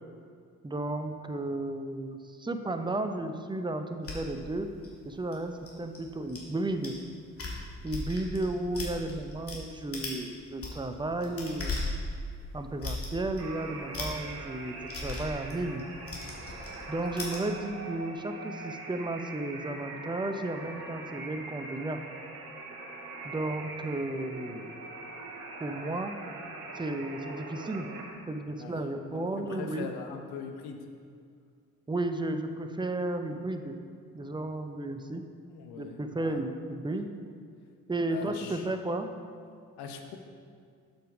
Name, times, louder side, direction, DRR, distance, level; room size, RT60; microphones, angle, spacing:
voice 1, 0.6-4.7 5.0-7.0 7.8-11.8 12.5-15.8 16.9-22.0 23.2-24.8 25.6-26.2 26.7-27.9 28.3-29.9 31.9-33.8 34.1-35.2 35.8-37.1 37.9-39.1, right 2 dB, 10° right, 7 dB, 0.7 m, -33 dB
sound 1, 4.0-6.4 6.8-7.0 7.3-9.6 9.9-10.2 10.5-17.4, left 2 dB, 30° left, 2.4 m, -37 dB
sound 2, 13.4-28.1, right 3 dB, 85° right, 0.9 m, -42 dB
voice 2, 28.5-30.8 35.5-36.4 38.1-38.7 39.8-40.2, left 6 dB, 60° left, 4 dB, 1.0 m, -42 dB
7.8 x 6.9 x 5.0 m, 2.2 s
figure-of-eight pair, 40°, 43 cm